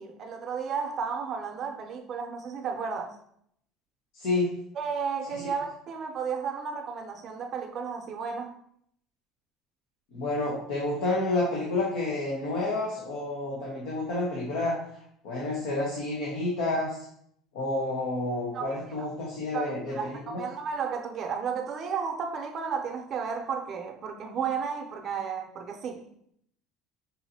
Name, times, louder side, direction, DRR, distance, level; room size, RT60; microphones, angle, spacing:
voice 1, 0.0-3.2 4.7-8.6 18.5-18.7 19.5-26.0, right 6 dB, 45° right, 0.6 m, -33 dB
voice 2, 4.1-4.5 10.1-14.8 15.2-17.0 17.5-20.4, left 2 dB, 80° left, 1.0 m, -29 dB
5.5 x 2.7 x 2.8 m
supercardioid pair, 120°, 0 cm